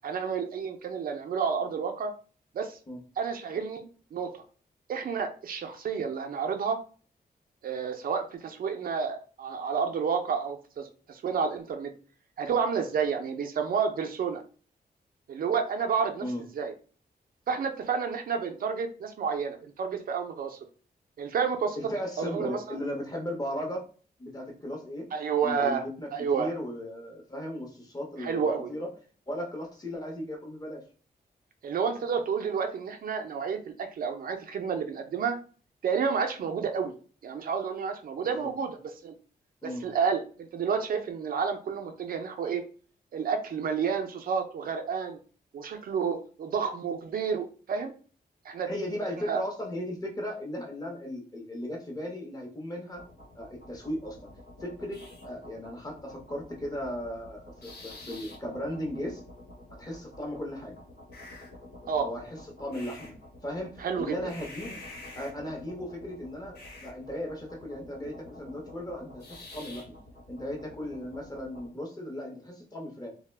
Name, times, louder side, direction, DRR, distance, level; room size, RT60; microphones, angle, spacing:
voice 1, 0.0-2.1 2.5-2.8 3.2-4.4 4.9-6.8 7.6-11.9 12.4-14.4 15.3-16.3 16.6-16.7 17.5-20.6 21.2-21.8 22.2-22.8 25.1-25.8 26.1-26.5 28.2-28.7 31.6-35.4 35.8-36.9 37.2-39.1 39.6-42.6 43.1-45.2 45.5-47.9 48.5-48.7 49.3-49.4 61.9-62.1 63.8-64.2, right 6 dB, 60° right, 6 dB, 0.4 m, -30 dB
voice 2, 21.7-23.8 24.2-25.1 25.4-28.9 29.3-30.8 38.4-38.5 39.6-39.9 48.6-53.0 53.3-54.2 54.6-59.2 59.7-60.8 62.0-63.1 63.4-64.8 65.1-70.0 70.3-73.1, left 1 dB, 25° left, 0 dB, 0.7 m, -36 dB
sound 1, 52.9-71.7, left 2 dB, 85° left, 1.2 m, -48 dB
2.2 x 2.0 x 3.2 m, 0.39 s
wide cardioid pair, 175°, 16 cm